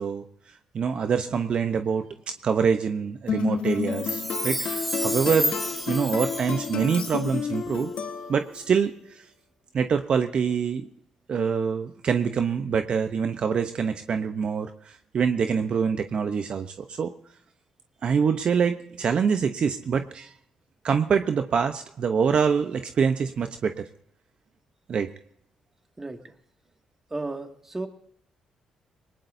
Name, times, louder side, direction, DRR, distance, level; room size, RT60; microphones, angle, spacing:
voice 1, 0.0-5.6 5.9-7.9 8.3-9.3 9.7-10.9 11.3-17.1 18.0-20.3 20.8-23.9 24.9-25.1, right 6 dB, 55° right, 7 dB, 0.9 m, -25 dB
sound 1, 3.3-8.7, left 7 dB, 70° left, 1.4 m, -31 dB
Chime, 3.8-7.5 7.7-7.8, equal, ahead, 1.9 m, -31 dB
voice 2, 26.0-26.3 27.1-27.9, right 2 dB, 20° right, 5 dB, 2.2 m, -34 dB
20.5 x 19.0 x 2.7 m, 0.66 s
supercardioid pair, 65°, 2 cm